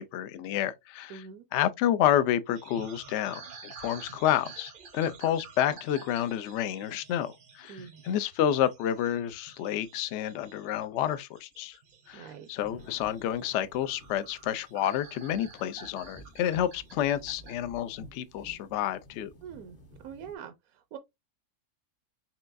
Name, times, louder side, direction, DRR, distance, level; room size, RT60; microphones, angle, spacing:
voice 1, 0.0-1.3 1.5-11.8 12.1-19.3, left 11 dB, 70° left, 0.6 m, -29 dB
voice 2, 1.1-1.5 7.7-8.0 12.1-12.5 19.4-19.8 20.0-21.0, right 7 dB, 70° right, 0.9 m, -44 dB
sound 1, 2.5-17.6, right 5 dB, 55° right, 0.5 m, -50 dB
sound 2, 12.6-20.3, right 1 dB, 40° left, 0.8 m, -53 dB
4.5 x 3.3 x 2.5 m
omnidirectional pair, 1.7 m